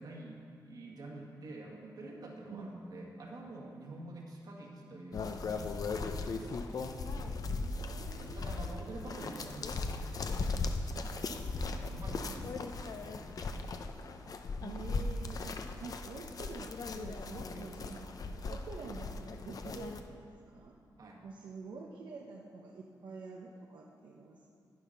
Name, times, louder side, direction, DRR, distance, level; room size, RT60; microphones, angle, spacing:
voice 1, 0.0-6.9 8.1-10.6 11.0-13.5 17.5-17.7 19.5-19.7 21.0-21.3, right 2 dB, 60° right, -1 dB, 2.0 m, -48 dB
sound 1, 5.1-20.0, left 3 dB, 55° left, 0.7 m, -38 dB
voice 2, 6.7-8.9 11.9-12.3 14.6-18.1 18.5-20.8 21.2-24.4, right 4 dB, 85° right, -3 dB, 1.0 m, -48 dB
10.5 x 9.3 x 5.9 m, 2.3 s
wide cardioid pair, 115°, 7 cm